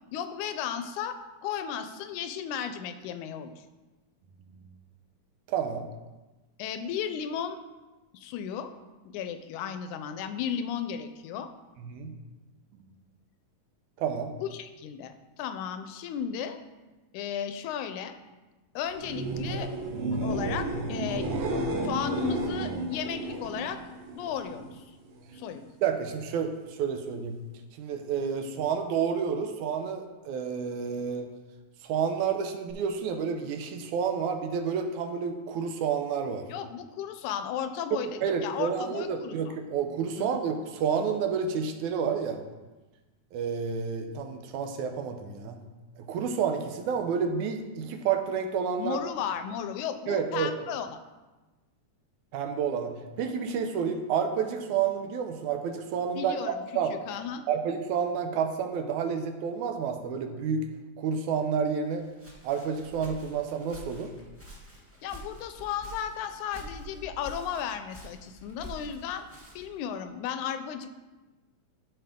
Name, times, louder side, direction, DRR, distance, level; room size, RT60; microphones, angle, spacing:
voice 1, 0.1-3.6 6.6-7.6 8.1-8.7 9.1-11.5 14.4-16.6 17.1-18.2 18.8-19.7 20.2-21.4 21.8-23.8 24.1-24.8 25.3-25.6 36.5-38.1 38.4-39.5 40.2-40.3 48.8-51.0 56.2-56.6 56.9-57.5 65.0-69.3 69.6-70.9, left 8 dB, 85° left, 9 dB, 2.1 m, -34 dB
voice 2, 5.5-5.9 11.8-12.2 12.8-12.9 14.0-14.3 25.8-27.4 27.8-31.3 31.8-36.5 38.2-42.4 43.3-45.6 46.0-49.0 50.1-50.5 52.3-56.9 57.5-60.7 61.0-62.1 62.4-64.1, right 6 dB, 85° right, 5 dB, 2.2 m, -30 dB
sound 1, 18.9-24.7 25.1-25.6 32.7-32.8, right 2 dB, 70° right, 1.9 m, -32 dB
Walk footsteps, 61.9-69.8, equal, 5° right, 1.1 m, -47 dB
13.0 x 5.0 x 3.7 m, 1.2 s
omnidirectional pair, 3.4 m